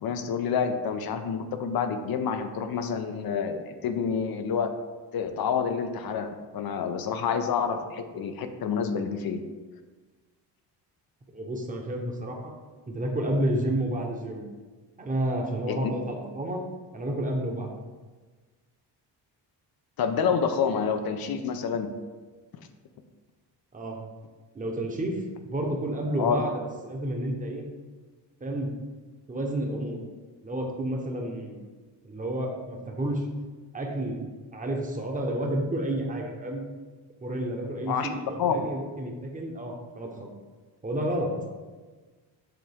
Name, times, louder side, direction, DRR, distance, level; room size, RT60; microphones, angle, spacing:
voice 1, 0.0-4.7 5.1-9.4 15.7-15.9 20.0-21.9 26.2-26.4 37.9-38.1 38.4-38.7, left 6 dB, 60° left, 8 dB, 0.6 m, -28 dB
voice 2, 11.3-12.5 12.9-14.4 15.0-16.6 16.9-17.7 23.7-24.0 24.5-27.6 28.4-28.7 29.3-30.0 30.4-31.6 32.0-33.3 33.7-36.6 37.2-40.3 40.8-41.4, right 1 dB, 20° right, 0 dB, 1.0 m, -30 dB
8.0 x 3.5 x 3.5 m, 1.4 s
cardioid pair, 115°, 42 cm